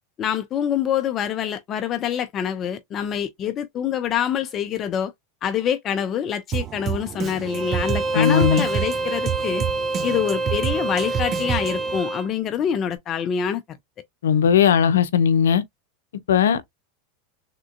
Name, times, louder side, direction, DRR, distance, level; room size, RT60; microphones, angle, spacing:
voice 1, 0.2-5.1 5.4-9.6 10.0-13.6, left 9 dB, 40° left, 0.5 m, -25 dB
Drum kit, 6.5-12.0, right 10 dB, 40° right, 0.4 m, -29 dB
Bowed string instrument, 7.5-12.3, right 2 dB, 10° right, 1.2 m, -27 dB
voice 2, 8.1-8.6 14.2-15.6 16.3-16.7, left 8 dB, 85° left, 0.6 m, -18 dB
3.6 x 2.4 x 2.4 m
hypercardioid pair, 100°, 0 cm